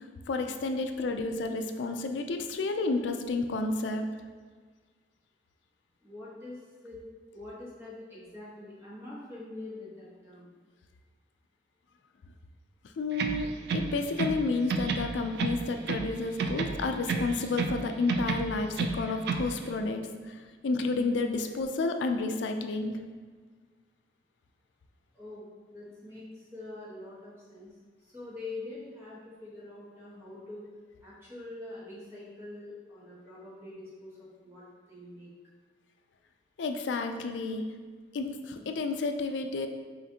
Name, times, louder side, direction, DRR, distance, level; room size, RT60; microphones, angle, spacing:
voice 1, 0.0-4.0 13.0-13.5 13.7-20.4 20.6-22.9 36.6-37.7 38.1-39.7, left 3 dB, 75° left, 6 dB, 0.4 m, -31 dB
voice 2, 6.0-7.0 7.3-10.5 25.1-30.7 31.0-35.3, left 2 dB, 15° right, -7 dB, 1.1 m, -45 dB
sound 1, 13.1-14.4 14.7-16.1 16.4-17.8 18.1-19.5, right 4 dB, 65° right, 0.3 m, -31 dB
5.7 x 2.5 x 2.7 m, 1.5 s
head